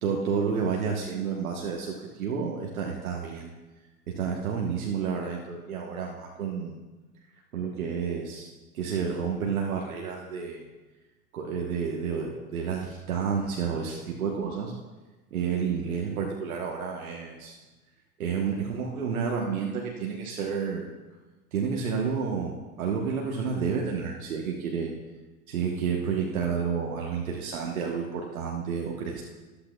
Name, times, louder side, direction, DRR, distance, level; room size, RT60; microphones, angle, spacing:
voice 1, 0.0-3.5 4.1-6.8 7.5-8.5 8.7-10.7 11.3-14.7 15.3-17.6 18.2-20.9 21.5-24.9 25.5-29.2, right 6 dB, 65° right, -1 dB, 1.3 m, -30 dB
13.5 x 12.0 x 2.3 m, 1.2 s
figure-of-eight pair, 85°, 45 cm